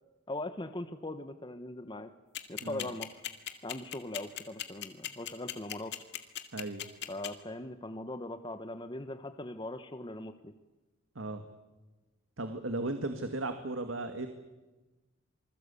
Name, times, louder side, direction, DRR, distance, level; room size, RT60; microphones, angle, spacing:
voice 1, 0.3-2.1 2.5-3.2 3.6-5.9 7.1-10.5, left 1 dB, 25° left, 9 dB, 1.1 m, -40 dB
sound 1, 2.3-7.3, left 12 dB, 60° left, 2.1 m, -37 dB
voice 2, 6.5-6.8 11.2-11.4 12.4-14.3, right 2 dB, 85° right, 7 dB, 2.0 m, -36 dB
27.0 x 20.5 x 8.4 m, 1.1 s
head